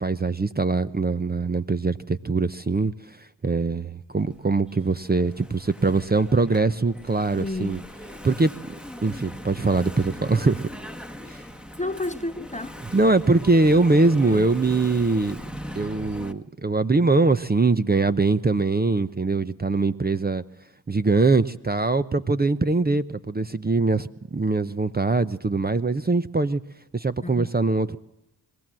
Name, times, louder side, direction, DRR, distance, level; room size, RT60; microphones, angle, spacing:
voice 1, 0.0-7.8 8.2-8.5 9.0-10.6 11.3-11.4 12.9-15.4 15.7-20.4 20.9-26.6 26.9-28.0, right 3 dB, 20° right, 0.7 m, -22 dB
Engine / Mechanisms, 4.2-16.3, equal, ahead, 1.3 m, -40 dB
voice 2, 7.4-7.9 11.8-12.8 14.3-14.5 27.2-27.5, left 2 dB, 15° left, 0.8 m, -31 dB
22.5 x 15.5 x 7.6 m
cardioid pair, 50°, 44 cm